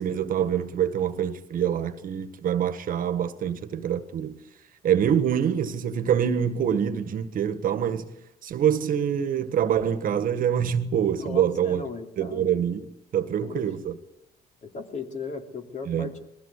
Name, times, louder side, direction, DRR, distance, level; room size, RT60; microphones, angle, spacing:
voice 1, 0.0-4.4 4.8-8.1 8.4-11.8 12.2-13.9 15.9-16.1, right 9 dB, 55° right, 1.6 m, -25 dB
voice 2, 11.1-12.5 13.4-13.7 14.6-16.2, left 4 dB, 45° left, 3.1 m, -36 dB
21.0 x 15.5 x 8.3 m
cardioid pair, 110°, 17 cm